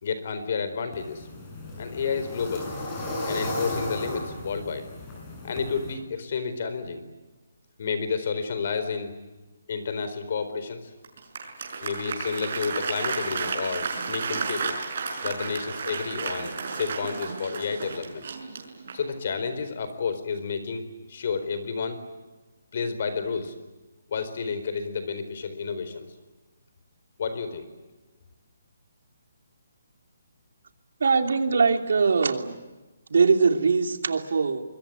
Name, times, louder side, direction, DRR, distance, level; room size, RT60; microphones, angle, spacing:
voice 1, 0.0-1.3 1.8-2.7 3.3-4.9 5.4-7.0 7.8-9.1 9.7-10.9 11.8-18.3 18.9-22.0 22.7-23.5 24.1-26.1 27.2-27.7, left 5 dB, 45° left, 10 dB, 4.3 m, -31 dB
sound 1, 0.9-5.9, left 1 dB, 15° left, 7.1 m, -34 dB
Applause, 11.0-19.2, right 5 dB, 45° right, 6.1 m, -32 dB
voice 2, 31.0-32.6 33.1-34.6, right 5 dB, 65° right, 7 dB, 2.9 m, -22 dB
26.0 x 23.0 x 9.5 m, 1.1 s
hypercardioid pair, 170°, 0 cm